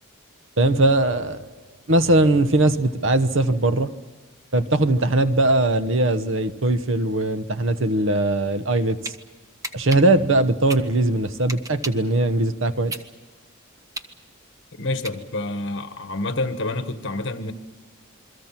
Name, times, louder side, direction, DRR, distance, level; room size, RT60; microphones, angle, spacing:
voice 1, 0.6-1.4 1.9-3.9 4.5-9.1 9.7-12.9, right 2 dB, 60° right, 1.1 m, -20 dB
sound 1, 9.0-9.2 9.6-12.1 12.5-15.6, right 2 dB, 15° right, 1.0 m, -35 dB
voice 2, 14.8-17.5, left 2 dB, 55° left, 1.7 m, -28 dB
28.0 x 23.0 x 6.0 m
head